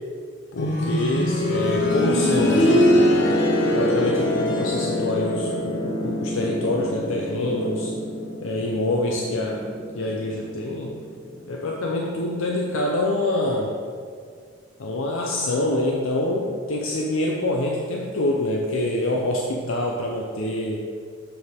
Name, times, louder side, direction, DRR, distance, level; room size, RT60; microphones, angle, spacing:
voice 1, 0.5-2.7 3.7-7.9 8.4-9.6 9.9-11.0 11.5-13.8 14.8-20.8, left 1 dB, 80° left, -1 dB, 0.6 m, -26 dB
sound 1, 0.6-11.3 11.6-11.7 12.6-12.7, left 1 dB, 60° left, 0.9 m, -23 dB
6.8 x 6.5 x 3.6 m, 2.1 s
head